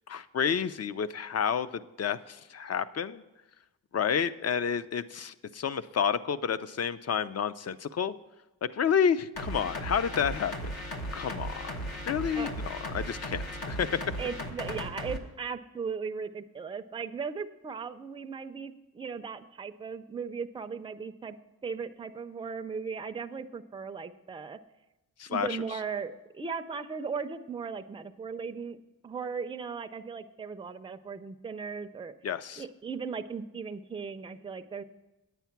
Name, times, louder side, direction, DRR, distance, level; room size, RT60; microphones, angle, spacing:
voice 1, 0.1-3.2 3.9-8.1 8.6-10.7 11.1-11.7 12.1-14.0 25.2-25.5 32.2-32.6, left 7 dB, 45° left, 15 dB, 0.4 m, -30 dB
sound 1, 9.4-15.2, equal, 75° left, 1.2 m, -36 dB
voice 2, 14.2-21.4 21.6-24.6 25.3-28.8 29.0-32.1 32.6-34.8, right 5 dB, 15° right, 8 dB, 0.4 m, -37 dB
9.3 x 9.0 x 5.8 m, 1.0 s
wide cardioid pair, 135°, 36 cm